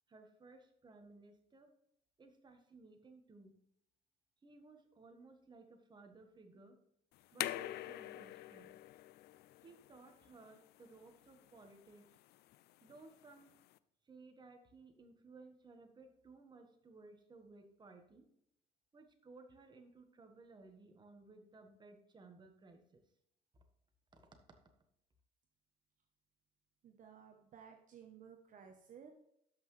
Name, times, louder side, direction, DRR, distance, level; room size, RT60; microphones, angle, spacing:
voice 1, 0.1-1.7 2.2-3.5 4.4-6.8 7.3-8.7 9.6-12.0 12.8-13.5 14.1-18.2 18.9-23.0 24.1-24.2, right 3 dB, 25° right, 4 dB, 1.5 m, -59 dB
sound 1, 7.1-13.8, left 15 dB, 70° left, 0.4 m, -47 dB
voice 2, 26.8-29.1, right 7 dB, 50° right, 4 dB, 1.0 m, -56 dB
12.5 x 5.7 x 3.3 m, 0.75 s
cardioid pair, 110°, 17 cm